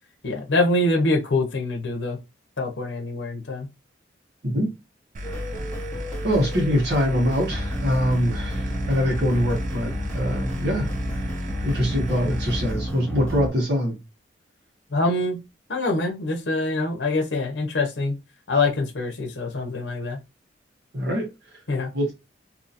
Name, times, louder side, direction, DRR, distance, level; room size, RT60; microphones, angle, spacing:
voice 1, 0.2-2.2 2.6-3.7 14.9-15.4 15.7-18.1 18.5-20.2 21.7-21.9, left 2 dB, 75° left, 0.7 m, -24 dB
sound 1, 5.1-12.7, equal, 45° right, 0.4 m, -33 dB
sound 2, 5.2-13.5, equal, 5° left, 0.8 m, -31 dB
voice 2, 6.2-10.9 11.6-14.0 20.9-21.3 21.9-22.1, equal, 60° right, 1.2 m, -23 dB
2.7 x 2.7 x 2.5 m
head